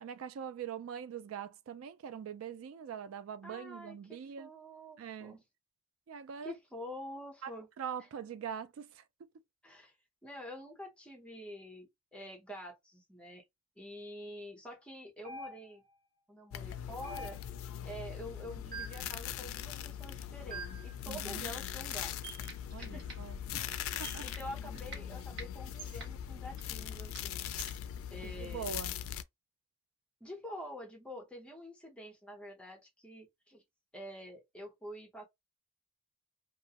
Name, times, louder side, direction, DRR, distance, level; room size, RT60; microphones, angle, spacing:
voice 1, 0.0-4.5 5.0-5.4 6.1-6.5 7.4-9.0 21.1-21.5 22.7-23.7 24.0-24.3 28.2-29.0, right 8 dB, 85° right, 0.3 m, -43 dB
voice 2, 3.4-5.4 6.4-7.7 9.6-9.9 10.2-13.4 13.8-15.8 16.3-17.4 17.8-22.1 22.8-23.1 23.9-27.4 28.1-28.8 30.2-33.6 33.9-35.3, equal, 5° left, 0.7 m, -47 dB
sound 1, 15.2-15.9 17.0-17.7 18.7-19.1 20.5-20.9 22.2-22.5 24.0-24.3 25.8-26.0 27.6-27.8, right 4 dB, 45° right, 0.7 m, -45 dB
sound 2, 16.5-29.2, left 10 dB, 85° left, 0.3 m, -41 dB
sound 3, 22.5-23.4 23.7-24.0 24.3-24.6 24.9-26.8 27.1-27.4 27.7-28.0, right 3 dB, 60° right, 1.4 m, -51 dB
2.3 x 2.0 x 2.8 m
head